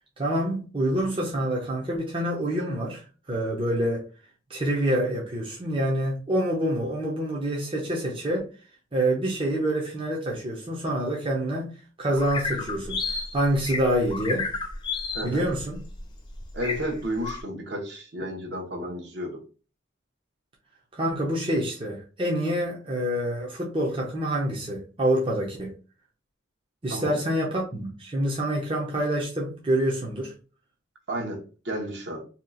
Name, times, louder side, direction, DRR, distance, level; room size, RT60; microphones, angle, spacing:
voice 1, 0.2-4.1 4.5-8.5 8.9-11.7 12.0-14.5 15.2-15.8 20.9-25.7 26.8-30.3, right 1 dB, 25° right, 0.6 m, -27 dB
sound 1, 12.1-17.4, left 4 dB, 25° left, 0.4 m, -32 dB
voice 2, 15.1-15.5 16.5-19.4 26.9-27.2 31.1-32.2, equal, 60° right, 1.0 m, -32 dB
2.8 x 2.3 x 3.7 m
head